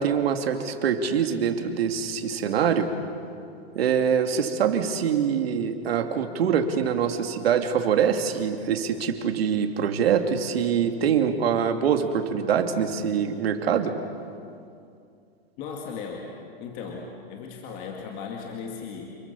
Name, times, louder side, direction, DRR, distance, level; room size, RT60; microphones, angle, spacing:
voice 1, 0.0-2.9 3.7-13.9, right 7 dB, 70° right, 5 dB, 2.7 m, -24 dB
voice 2, 15.6-16.3 16.6-19.2, left 5 dB, 25° left, 0 dB, 2.3 m, -37 dB
29.0 x 22.5 x 7.1 m, 2.5 s
supercardioid pair, 170°, 31 cm